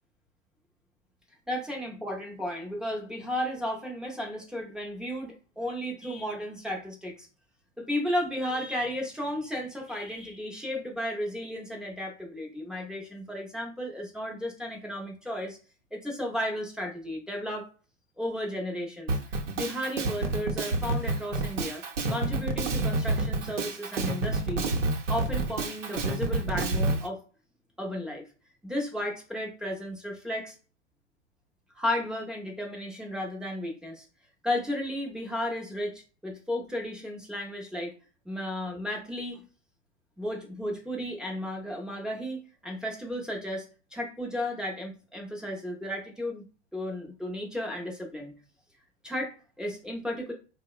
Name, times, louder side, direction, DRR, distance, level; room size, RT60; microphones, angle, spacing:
voice 1, 1.5-7.3 7.8-15.6 15.9-17.7 18.2-24.7 25.1-27.2 27.8-28.2 28.6-30.6 31.7-34.1 34.4-37.9 38.3-39.4 40.2-46.5 46.7-48.4 49.0-50.3, left 1 dB, ahead, -2 dB, 0.4 m, -34 dB
Drum kit, 19.1-27.0, right 2 dB, 90° right, 0.7 m, -28 dB
2.8 x 2.1 x 2.3 m, 0.35 s
hypercardioid pair, 110°, 35 cm